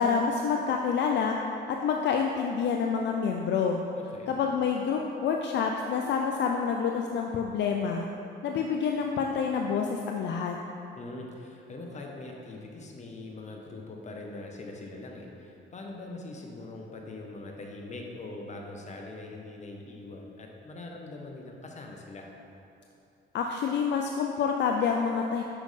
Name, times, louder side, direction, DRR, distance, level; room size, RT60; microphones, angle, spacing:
voice 1, 0.0-1.4 1.7-3.8 4.3-8.1 8.4-10.6 23.3-25.4, left 6 dB, 60° left, 2 dB, 0.4 m, -27 dB
voice 2, 3.9-4.3 11.0-22.3, left 2 dB, 35° left, 0 dB, 0.9 m, -42 dB
6.2 x 5.3 x 3.2 m, 2.8 s
cardioid pair, 90°, 20 cm